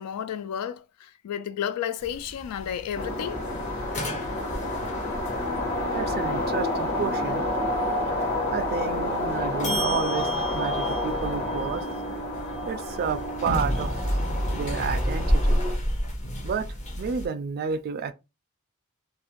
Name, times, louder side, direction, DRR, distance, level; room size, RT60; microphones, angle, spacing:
voice 1, 0.0-3.5, left 9 dB, 85° left, 0.3 m, -32 dB
sound 1, 2.0-17.3, equal, 30° left, 0.6 m, -31 dB
sound 2, 2.9-15.7, left 1 dB, 50° left, 1.0 m, -29 dB
voice 2, 5.9-7.4 8.5-10.3 10.5-11.8 12.7-14.0 14.5-15.6 16.4-18.1, right 6 dB, 45° right, 0.3 m, -31 dB
2.4 x 2.0 x 2.9 m
head